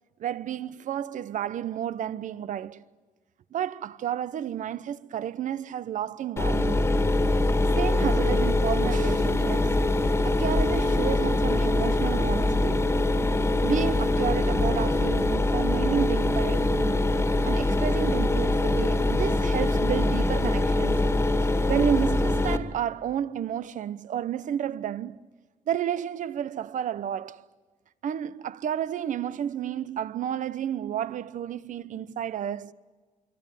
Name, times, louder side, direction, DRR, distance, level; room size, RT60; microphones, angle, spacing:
voice 1, 0.2-2.8 3.5-6.9 7.8-9.8 10.2-12.9 13.6-17.0 17.4-21.1 21.4-25.3 25.7-27.5 28.0-32.7, right 9 dB, 65° right, 0.9 m, -31 dB
Mechanisms, 6.4-22.6, left 2 dB, 20° left, 1.9 m, -23 dB
26.5 x 23.5 x 9.1 m
cardioid pair, 135°, 14 cm